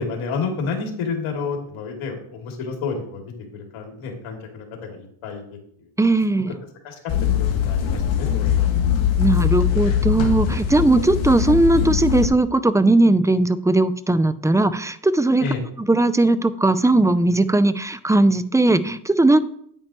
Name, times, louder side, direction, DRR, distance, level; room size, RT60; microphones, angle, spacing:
voice 1, 0.0-5.4 6.8-7.1 7.4-9.1 15.4-15.6, left 5 dB, 85° left, 1 dB, 2.5 m, -30 dB
voice 2, 6.0-6.5 9.2-15.4 15.8-19.4, right 2 dB, 5° right, 14 dB, 0.4 m, -18 dB
sound 1, 7.1-12.3, left 9 dB, 70° left, 1.9 m, -21 dB
9.1 x 8.8 x 3.0 m, 0.65 s
cardioid pair, 85°, 48 cm